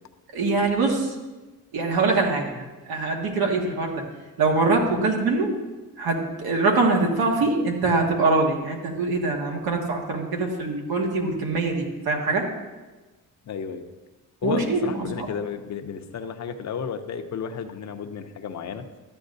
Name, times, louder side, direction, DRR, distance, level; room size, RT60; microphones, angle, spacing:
voice 1, 0.3-1.2 1.7-4.0 4.4-5.6 6.0-12.5 14.4-15.3, right 3 dB, 90° right, 0 dB, 1.7 m, -23 dB
voice 2, 13.5-13.8 14.4-18.8, left 6 dB, 50° left, 7 dB, 0.7 m, -32 dB
13.0 x 8.8 x 2.6 m, 1.2 s
cardioid pair, 125°, 36 cm